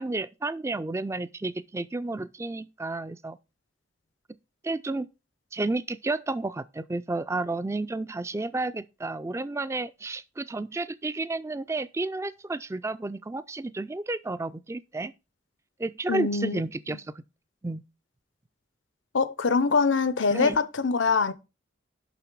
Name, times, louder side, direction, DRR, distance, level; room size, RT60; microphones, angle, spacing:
voice 1, 0.0-3.4 4.6-5.1 5.5-15.1 15.8-17.1 17.6-17.8 20.3-20.6, right 2 dB, 15° right, 0.3 m, -31 dB
voice 2, 16.1-16.6 19.1-21.3, left 4 dB, 80° left, 0.7 m, -24 dB
6.9 x 5.8 x 4.6 m
head